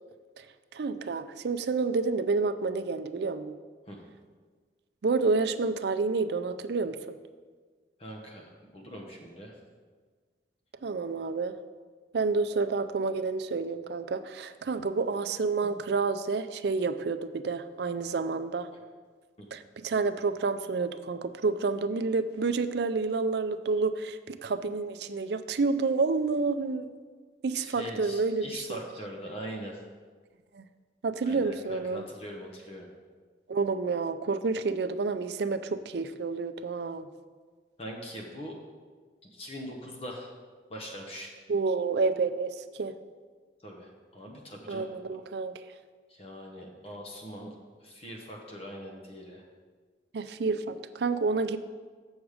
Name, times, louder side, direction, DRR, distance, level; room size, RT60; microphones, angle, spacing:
voice 1, 0.7-3.5 5.0-7.2 10.8-11.5 12.1-18.7 19.5-26.9 27.4-28.8 30.5-30.6 31.0-32.0 33.5-37.1 41.5-42.9 44.7-45.5 50.1-51.6, right 4 dB, 65° right, 10 dB, 0.4 m, -29 dB
voice 2, 8.0-8.5 8.7-9.5 19.4-19.5 27.5-29.8 31.2-32.9 37.8-38.5 39.2-40.3 40.7-41.3 43.6-44.9 46.1-47.5 47.8-49.4, equal, 30° left, 0 dB, 0.9 m, -42 dB
7.2 x 6.5 x 4.8 m, 1.5 s
head